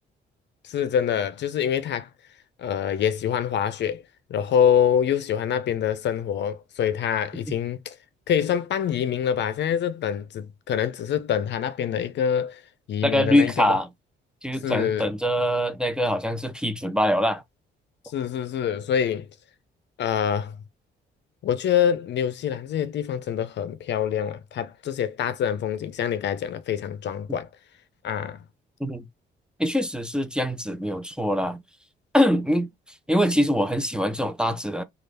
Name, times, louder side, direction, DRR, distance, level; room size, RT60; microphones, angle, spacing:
voice 1, 0.6-2.1 2.6-4.0 4.3-7.9 8.3-12.6 12.9-13.8 14.6-15.1 18.1-19.3 20.0-20.6 21.4-27.5 28.0-28.4, left 8 dB, 60° left, 0.6 m, -25 dB
voice 2, 13.0-13.9 14.4-17.4 28.8-29.1 29.6-31.6 32.1-32.7 33.1-34.8, equal, 5° right, 0.6 m, -23 dB
3.1 x 2.4 x 3.3 m
cardioid pair, 90°, 20 cm